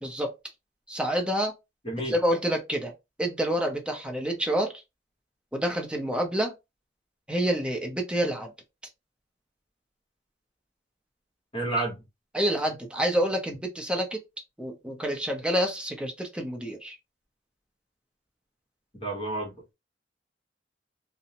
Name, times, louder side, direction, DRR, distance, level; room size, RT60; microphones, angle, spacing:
voice 1, 0.0-0.3 0.9-1.5 2.0-2.9 3.2-4.7 5.5-6.5 7.3-8.5 12.3-14.2 14.6-17.0, equal, 5° right, 0.5 m, -28 dB
voice 2, 11.5-12.0 19.0-19.5, right 2 dB, 30° left, 1.1 m, -29 dB
2.6 x 2.0 x 2.7 m
head